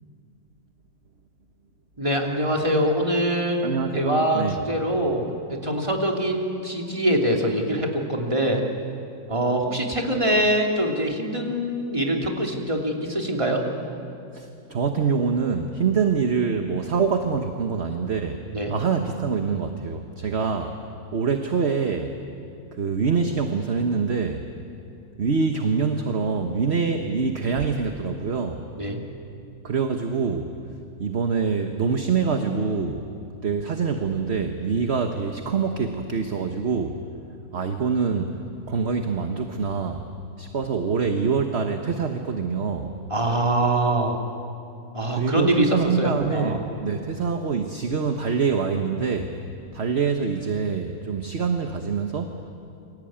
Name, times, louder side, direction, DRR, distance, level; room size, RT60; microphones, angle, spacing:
voice 1, 2.0-3.6 3.9-5.2 5.5-8.6 9.3-13.6 18.5-18.7 28.8-29.0 43.1-44.2 44.9-46.6, right 1 dB, 20° right, 1 dB, 3.0 m, -24 dB
voice 2, 3.6-4.6 14.3-18.4 18.7-20.8 21.1-22.2 22.7-24.4 25.2-28.6 29.6-30.6 31.0-33.1 33.4-37.0 37.5-38.4 38.6-40.1 40.4-42.9 45.1-49.4 49.7-52.5, right 5 dB, 45° right, 5 dB, 1.4 m, -25 dB
29.0 x 23.0 x 8.9 m, 2.6 s
omnidirectional pair, 1.6 m